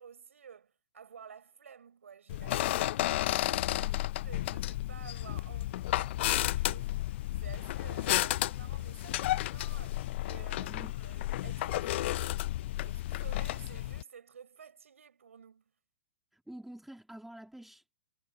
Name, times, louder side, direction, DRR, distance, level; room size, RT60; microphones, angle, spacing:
voice 1, 0.0-3.1 3.5-7.0 7.4-12.5 12.8-15.7, right 7 dB, 85° right, 5.6 m, -52 dB
sound 1, 2.3-14.0, left 15 dB, 60° left, 0.4 m, -32 dB
voice 2, 16.3-17.8, right 1 dB, ahead, 2.1 m, -48 dB
hypercardioid pair, 120°, 7 cm